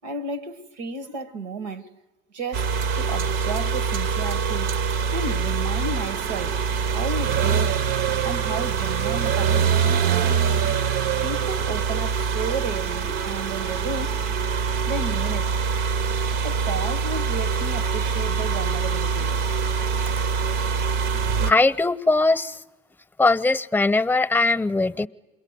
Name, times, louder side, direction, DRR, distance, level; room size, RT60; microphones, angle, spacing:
voice 1, 0.0-1.9 2.3-4.8 5.1-7.8 8.2-10.3 10.6-10.7 11.2-14.1 14.9-15.6 16.4-19.4, right 3 dB, 90° right, 1.3 m, -33 dB
sound 1, 2.5-21.5, right 6 dB, 65° right, 0.8 m, -24 dB
voice 2, 21.4-22.6 23.2-25.1, left 3 dB, 10° left, 0.8 m, -20 dB
27.5 x 22.0 x 9.5 m
hypercardioid pair, 70°, 21 cm